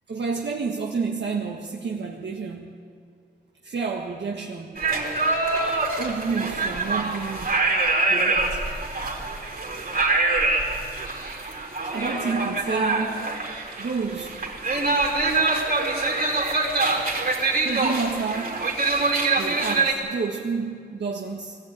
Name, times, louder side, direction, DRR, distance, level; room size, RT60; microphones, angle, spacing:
voice 1, 0.1-2.8 3.6-4.8 6.0-7.6 8.1-8.6 11.8-13.3 13.8-14.4 17.6-18.7 19.4-21.6, right 5 dB, 85° right, -1 dB, 1.7 m, -30 dB
sound 1, 4.8-19.9, right 3 dB, 60° right, 4.2 m, -25 dB
21.5 x 15.0 x 9.3 m, 2.3 s
wide cardioid pair, 90°, 18 cm